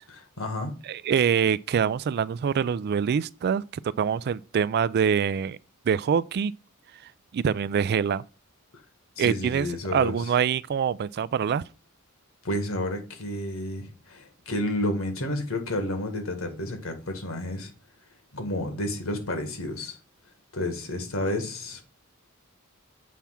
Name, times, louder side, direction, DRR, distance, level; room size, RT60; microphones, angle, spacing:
voice 1, 0.1-0.7 9.2-10.3 12.4-17.7 18.3-20.0 20.5-21.8, left 1 dB, 75° left, 1.8 m, -31 dB
voice 2, 0.9-5.6 5.9-6.5 7.3-8.2 9.2-9.7 9.9-11.6, right 7 dB, 50° right, 0.3 m, -25 dB
7.4 x 3.5 x 5.7 m
head